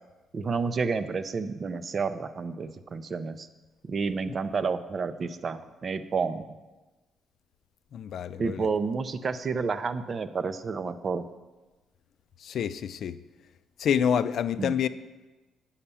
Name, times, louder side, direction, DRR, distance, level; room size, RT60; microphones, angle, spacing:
voice 1, 0.3-3.5 3.8-6.4 8.4-11.2 14.6-14.7, right 5 dB, 45° right, 12 dB, 0.5 m, -30 dB
voice 2, 7.9-8.7 12.4-13.2 13.8-14.9, left 8 dB, 65° left, 13 dB, 0.4 m, -27 dB
8.6 x 5.7 x 6.9 m, 1.2 s
cardioid pair, 90°, 0 cm